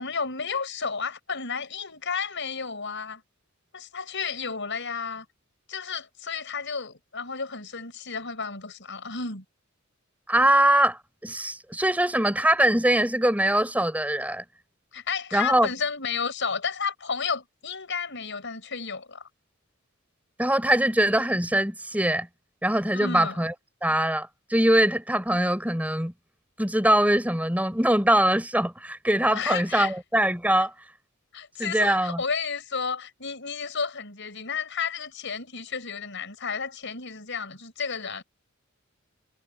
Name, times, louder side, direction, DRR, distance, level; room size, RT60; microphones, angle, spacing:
voice 1, 0.0-3.2 3.7-5.2 5.7-9.4 14.9-19.2 22.9-23.4 29.3-29.9 31.3-38.2, left 5 dB, 60° left, 6.6 m, -32 dB
voice 2, 10.3-14.4 15.3-15.7 20.4-22.3 22.6-23.5 23.8-26.1 26.6-30.7 31.6-32.2, right 1 dB, 10° right, 7.3 m, -22 dB
head